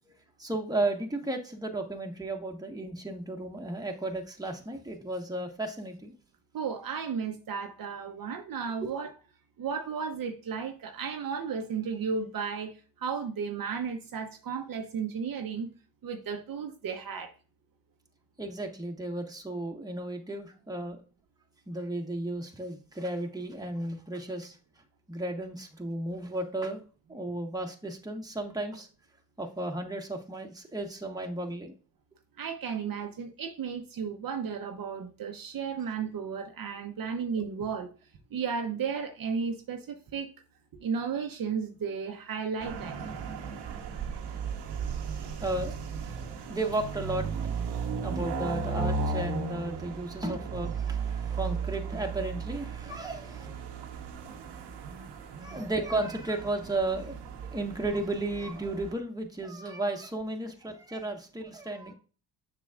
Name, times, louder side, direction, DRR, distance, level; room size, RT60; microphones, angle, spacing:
voice 1, 0.4-6.1 8.8-8.9 18.4-21.0 21.7-24.5 25.1-26.8 27.1-28.9 29.4-31.7 45.4-45.8 46.5-47.2 48.0-53.6 55.4-57.2 57.5-61.9, right 2 dB, 10° right, 1.5 m, -34 dB
voice 2, 6.5-9.1 9.6-12.7 13.0-15.7 16.0-17.3 32.4-37.9 38.3-40.3 40.8-43.0 54.8-55.6, right 6 dB, 55° right, 0.9 m, -34 dB
sound 1, 42.6-58.9, right 5 dB, 85° right, 1.2 m, -35 dB
7.0 x 5.7 x 2.5 m
supercardioid pair, 65°, 40 cm